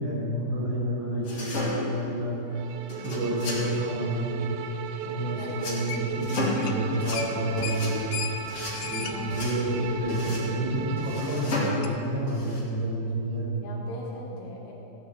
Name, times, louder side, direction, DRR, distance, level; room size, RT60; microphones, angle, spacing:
voice 1, 0.0-2.4 2.9-4.3 5.0-8.1 8.8-13.6, right 1 dB, 70° right, -7 dB, 4.7 m, -29 dB
sound 1, 1.2-2.1 2.9-3.7 5.5-5.8 6.2-6.7 6.9-7.2 7.6-7.9 8.5-8.8 9.3-9.6 10.1-10.5 11.0-11.8 12.3-12.6, left 2 dB, 40° left, 2.7 m, -33 dB
Bowed string instrument, 2.5-11.7, right 8 dB, 85° right, 2.8 m, -37 dB
sound 2, 5.9-6.3 6.5-6.8 7.1-10.5 10.9-11.0 11.8-11.9, left 9 dB, 90° left, 2.2 m, -36 dB
voice 2, 8.9-9.3 13.6-14.7, left 2 dB, 70° left, -4 dB, 3.6 m, -41 dB
16.0 x 10.0 x 3.4 m, 3.0 s
omnidirectional pair, 5.2 m